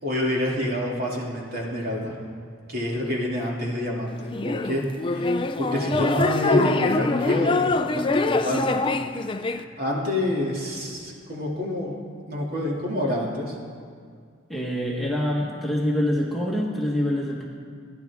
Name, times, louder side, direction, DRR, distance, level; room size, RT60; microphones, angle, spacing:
voice 1, 0.0-2.2 2.7-4.8 5.1-8.9 9.4-11.9 12.3-13.6, left 1 dB, 45° right, -3 dB, 2.5 m, -27 dB
sound 1, 4.3-9.6, left 2 dB, 25° left, 0.4 m, -24 dB
voice 2, 14.5-17.4, equal, ahead, -4 dB, 1.4 m, -25 dB
29.5 x 10.5 x 3.6 m, 2.1 s
head